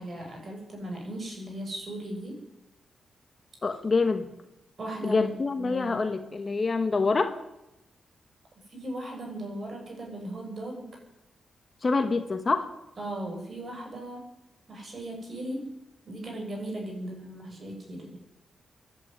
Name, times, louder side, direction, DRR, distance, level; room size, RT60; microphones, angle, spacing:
voice 1, 0.0-2.4 4.8-6.0 8.7-10.9 13.0-14.3 14.7-15.7 16.1-18.2, right 1 dB, 40° right, 1 dB, 7.4 m, -37 dB
voice 2, 3.6-4.3 5.0-7.4 11.8-12.7, left 4 dB, 30° left, 8 dB, 1.4 m, -26 dB
24.5 x 11.0 x 9.7 m, 0.91 s
wide cardioid pair, 135°, 0 cm